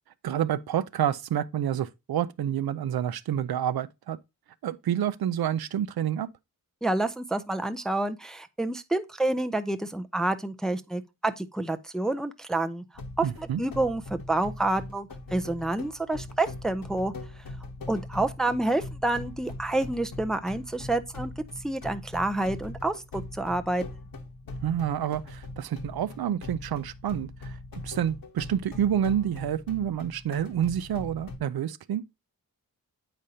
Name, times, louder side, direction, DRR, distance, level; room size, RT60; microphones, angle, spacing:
voice 1, 0.2-4.2 4.6-6.3 13.2-13.6 24.6-32.0, right 10 dB, 85° right, 0.6 m, -28 dB
voice 2, 6.8-12.8 13.2-17.1 17.9-23.8, right 2 dB, ahead, 0.4 m, -28 dB
sound 1, 13.0-31.4, left 2 dB, 70° left, 1.0 m, -41 dB
8.9 x 5.0 x 2.7 m
wide cardioid pair, 170°, 36 cm